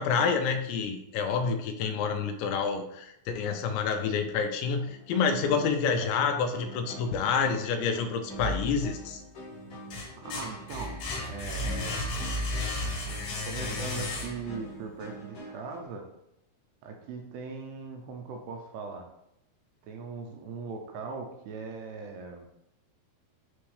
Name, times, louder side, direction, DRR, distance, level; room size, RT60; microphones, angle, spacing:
voice 1, 0.0-9.2, left 5 dB, 85° left, 6 dB, 2.9 m, -28 dB
sound 1, 4.7-15.9, right 1 dB, 50° left, 1.7 m, -45 dB
sound 2, 8.4-9.2 9.6-14.7, left 2 dB, 65° left, 3.3 m, -34 dB
voice 2, 10.2-12.0 13.4-16.1 16.8-19.1 19.8-22.5, right 4 dB, 80° right, 3 dB, 2.5 m, -40 dB
9.4 x 3.5 x 3.2 m, 0.82 s
omnidirectional pair, 5.1 m